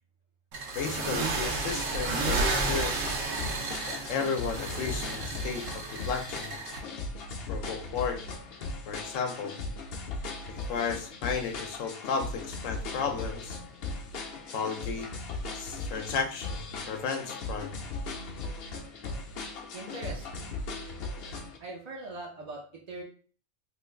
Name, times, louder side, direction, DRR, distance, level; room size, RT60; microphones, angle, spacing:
sound 1, 0.5-6.8, right 3 dB, 85° right, 1.0 m, -32 dB
voice 1, 0.8-3.1 3.9-6.6 7.5-8.2 8.9-9.6 10.7-13.6 14.5-15.1 15.5-17.7, left 6 dB, 90° left, 5 dB, 1.0 m, -33 dB
sound 2, 2.0-21.6, left 3 dB, 60° left, 0.7 m, -38 dB
voice 2, 19.7-20.6 21.6-23.0, right 2 dB, 60° right, -2 dB, 0.4 m, -41 dB
3.0 x 2.3 x 3.3 m, 0.44 s
omnidirectional pair, 1.3 m